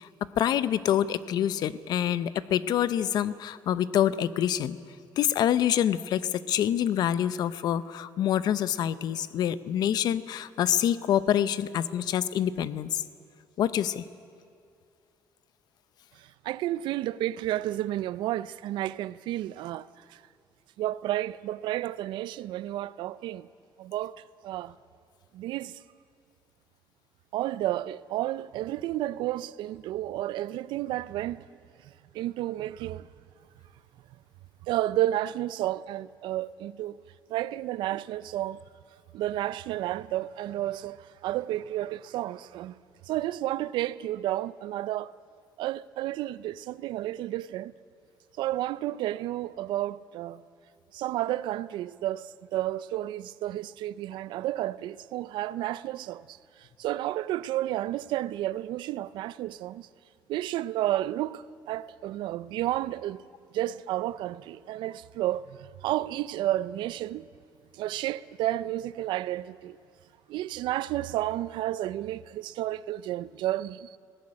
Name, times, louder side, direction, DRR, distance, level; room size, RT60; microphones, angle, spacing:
voice 1, 0.0-4.8 5.2-13.0 13.6-14.0, left 10 dB, 60° left, 0.7 m, -26 dB
voice 2, 16.2-20.2 20.8-23.5 23.8-24.7 25.3-25.8 27.3-31.5 32.1-33.1 34.6-37.0 37.3-38.6 39.1-42.7 43.0-45.1 45.6-47.7 48.4-50.4 50.9-59.9 60.3-63.2 63.5-67.3 67.7-69.8 70.3-74.0, right 14 dB, 85° right, 0.5 m, -31 dB
19.5 x 17.5 x 9.8 m
cardioid pair, 160°, 8 cm